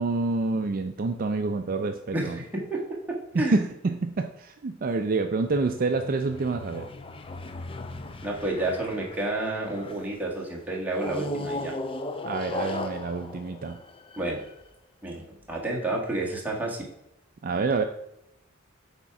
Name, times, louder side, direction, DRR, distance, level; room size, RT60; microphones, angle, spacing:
voice 1, 0.0-2.4 3.3-6.9 12.2-13.8 17.4-17.8, right 3 dB, 45° right, 7 dB, 0.4 m, -27 dB
voice 2, 2.1-2.8 3.3-3.6 8.2-11.7 14.2-14.4 15.0-16.9, right 2 dB, 10° right, -3 dB, 1.6 m, -30 dB
sound 1, 5.5-10.1 10.9-14.5, left 2 dB, 25° left, 0.5 m, -37 dB
8.1 x 3.7 x 5.8 m, 0.84 s
head